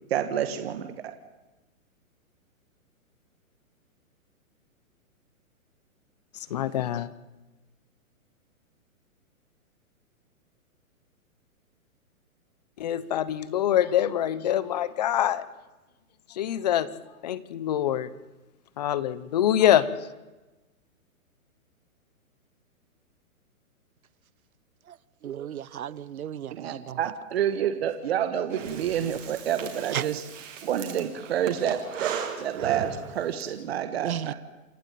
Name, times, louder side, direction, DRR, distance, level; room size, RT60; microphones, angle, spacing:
voice 1, 0.1-0.9 26.5-30.2 30.6-34.3, right 9 dB, 45° right, 1.6 m, -28 dB
voice 2, 6.5-7.1 12.8-15.4 16.3-16.9 17.2-18.1 18.8-19.9, left 11 dB, 30° left, 0.9 m, -24 dB
voice 3, 25.2-27.0 29.9-30.0 34.0-34.3, right 10 dB, 75° right, 1.1 m, -33 dB
Breathing, 28.5-33.5, right 7 dB, 60° right, 3.8 m, -37 dB
28.0 x 12.0 x 9.2 m
hypercardioid pair, 165°, 43 cm